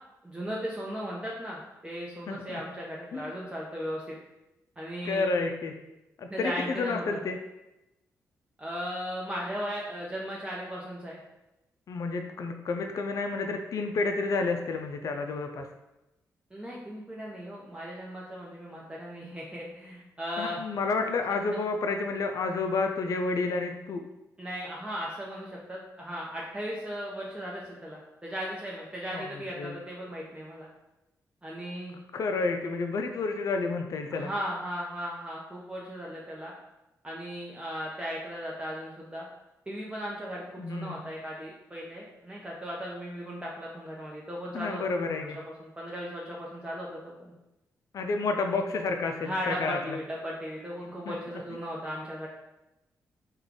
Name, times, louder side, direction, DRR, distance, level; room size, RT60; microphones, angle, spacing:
voice 1, 0.2-4.2 4.8-5.3 6.3-7.0 8.6-11.2 16.5-20.6 24.4-30.7 31.4-32.0 34.1-36.5 37.0-39.3 39.7-44.8 45.4-47.3 49.3-52.3, equal, 15° right, -4 dB, 0.7 m, -37 dB
voice 2, 2.3-2.6 3.1-3.3 5.0-5.7 6.2-7.4 11.9-15.7 20.4-24.1 29.1-29.7 32.1-34.3 40.6-41.0 44.5-45.4 47.9-50.0 51.1-51.2, left 3 dB, 60° left, 4 dB, 0.4 m, -30 dB
3.3 x 2.3 x 3.8 m, 0.95 s
supercardioid pair, 55°, 7 cm